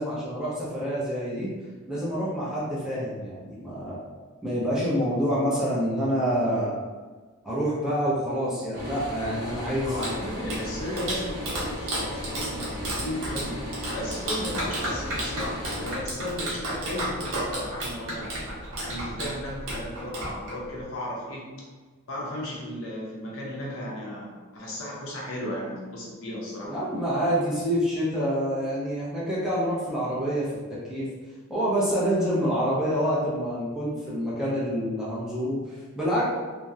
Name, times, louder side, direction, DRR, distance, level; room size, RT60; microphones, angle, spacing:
voice 1, 0.0-1.5 1.9-4.0 4.4-6.8 7.4-10.2 26.6-31.1 31.5-36.2, equal, 5° right, -9 dB, 0.5 m, -27 dB
sound 1, 8.7-16.0, left 1 dB, 35° right, 0.7 m, -36 dB
Clapping, 9.7-20.8, right 1 dB, 70° right, 0.8 m, -33 dB
voice 2, 9.8-18.3 18.8-21.5 22.1-26.9, left 1 dB, 65° left, -4 dB, 0.7 m, -35 dB
2.7 x 2.0 x 2.3 m, 1.4 s
head